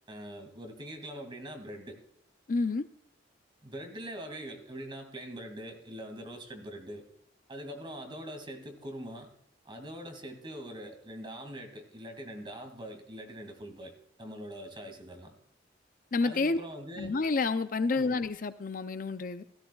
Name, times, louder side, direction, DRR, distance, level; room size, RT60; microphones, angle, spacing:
voice 1, 0.1-2.0 3.6-7.1 7.5-9.3 9.7-13.9 14.2-15.3 16.2-17.1 17.9-18.1, equal, 25° right, 5 dB, 2.1 m, -43 dB
voice 2, 2.5-2.8 16.1-16.6 17.0-19.4, left 3 dB, 45° left, 11 dB, 0.5 m, -29 dB
17.0 x 13.5 x 2.3 m, 0.70 s
head